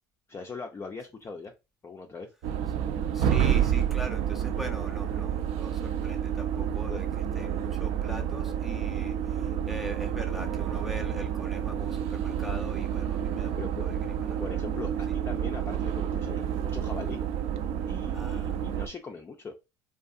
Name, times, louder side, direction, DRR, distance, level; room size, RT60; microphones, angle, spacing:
voice 1, 0.3-1.5 1.8-2.3 6.9-7.0 12.2-12.3 13.6-13.8 14.4-17.2 17.9-19.6, left 4 dB, 20° left, 0.4 m, -40 dB
sound 1, 2.4-18.9, right 9 dB, 60° right, 0.4 m, -29 dB
voice 2, 3.1-7.1 7.3-14.6 15.1-15.2 18.1-18.6, equal, ahead, 0.8 m, -41 dB
2.6 x 2.3 x 2.4 m
hypercardioid pair, 80°, 12 cm